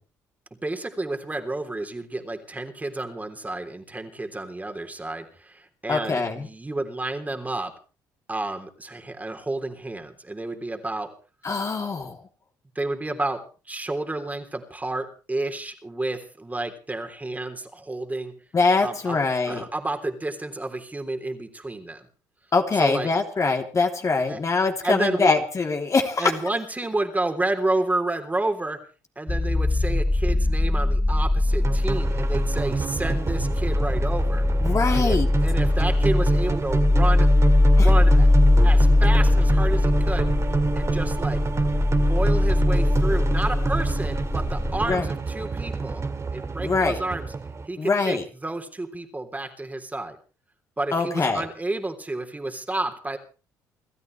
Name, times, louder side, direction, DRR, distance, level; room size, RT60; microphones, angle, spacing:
voice 1, 0.6-7.7 8.3-11.1 11.5-11.6 12.7-18.3 18.8-19.2 19.4-22.0 22.8-23.1 24.3-24.4 24.8-25.3 26.2-28.8 29.1-34.4 35.0-37.3 37.7-38.3 38.6-41.4 41.9-46.0 46.3-47.3 47.7-50.2 50.8-53.2, right 2 dB, 20° right, 5 dB, 3.4 m, -30 dB
voice 2, 5.9-6.5 11.4-12.2 18.5-19.6 22.5-26.3 34.6-35.3 37.8-37.9 44.8-45.0 46.6-47.0 47.8-48.2 50.9-51.4, left 4 dB, 40° left, 3 dB, 3.1 m, -23 dB
sound 1, 29.3-45.0, left 2 dB, 15° left, 0.7 m, -21 dB
sound 2, 31.5-47.7, right 4 dB, 35° right, 2.1 m, -28 dB
29.5 x 13.5 x 3.3 m, 0.36 s
hypercardioid pair, 55°, 8 cm